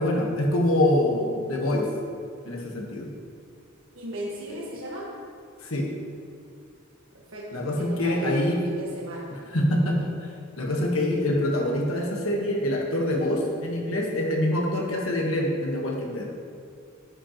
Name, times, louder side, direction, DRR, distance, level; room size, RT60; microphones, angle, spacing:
voice 1, 0.0-1.9 2.4-3.1 5.6-5.9 7.5-8.6 9.5-10.1 10.6-16.3, left 1 dB, 80° left, 0 dB, 1.4 m, -25 dB
voice 2, 3.9-5.1 7.3-7.5 7.8-9.3, right 1 dB, 75° right, -5 dB, 1.5 m, -35 dB
9.8 x 7.7 x 3.0 m, 2.2 s
head